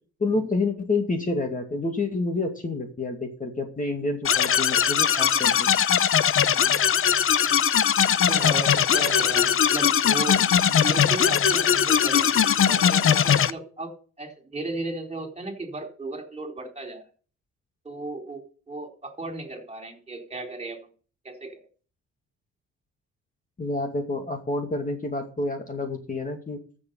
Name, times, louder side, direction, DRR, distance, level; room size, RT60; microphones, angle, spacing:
voice 1, 0.2-5.7 23.6-26.6, left 3 dB, 25° left, 4 dB, 2.3 m, -28 dB
sound 1, 4.2-13.5, left 8 dB, 45° left, 0.8 m, -20 dB
voice 2, 8.3-10.4 10.7-12.3 12.7-17.0 17.8-20.8 21.2-21.6, right 2 dB, 20° right, 3 dB, 4.0 m, -35 dB
14.0 x 7.0 x 5.5 m, 0.40 s
cardioid pair, 90°, 30 cm